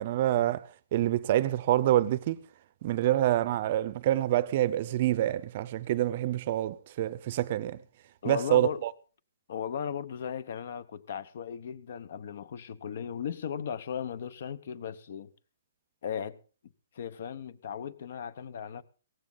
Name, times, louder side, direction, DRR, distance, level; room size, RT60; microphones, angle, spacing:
voice 1, 0.0-2.4 2.8-7.8 8.2-8.9, right 13 dB, 35° right, 0.6 m, -27 dB
voice 2, 8.2-8.8 9.5-15.3 16.0-16.4 16.9-18.8, left 8 dB, 50° left, 1.0 m, -36 dB
17.5 x 15.0 x 4.0 m
hypercardioid pair, 170°, 0 cm